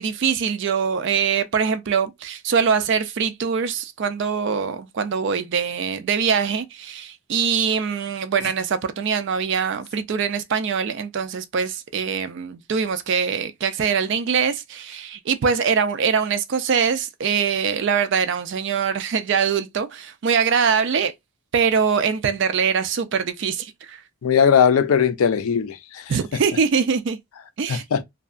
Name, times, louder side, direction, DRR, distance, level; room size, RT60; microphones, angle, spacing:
voice 1, 0.0-21.1 21.5-24.0 26.1-27.2 27.6-27.8, right 6 dB, 55° right, 0.3 m, -23 dB
voice 2, 24.2-26.1 27.7-28.0, left 7 dB, 75° left, 0.4 m, -19 dB
2.7 x 2.3 x 2.4 m
head